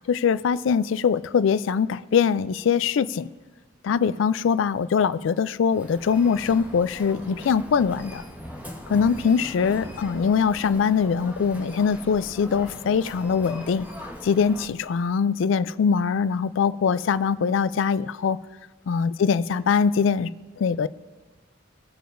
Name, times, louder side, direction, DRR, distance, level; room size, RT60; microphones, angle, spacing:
voice 1, 0.1-3.3 3.8-8.2 8.9-13.9 14.2-18.4 18.9-20.3 20.6-20.9, left 6 dB, 90° left, 15 dB, 0.4 m, -22 dB
Human voice, 5.7-14.7, left 1 dB, 10° right, 1.4 m, -40 dB
19.5 x 6.7 x 2.6 m, 1.3 s
head